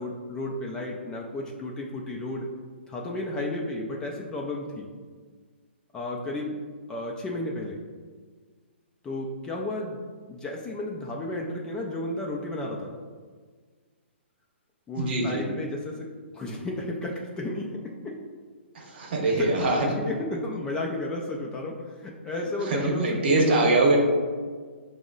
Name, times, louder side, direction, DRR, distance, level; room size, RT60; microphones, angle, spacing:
voice 1, 0.0-2.5 2.9-4.9 5.9-6.6 6.9-7.8 9.0-10.0 10.3-13.0 14.9-16.1 16.3-18.2 19.4-23.5, left 1 dB, 10° left, -2 dB, 0.3 m, -33 dB
voice 2, 14.9-15.4 18.7-19.9 22.6-24.0, right 2 dB, 55° right, 0 dB, 0.9 m, -23 dB
5.0 x 2.0 x 3.7 m, 1.5 s
hypercardioid pair, 140°, 7 cm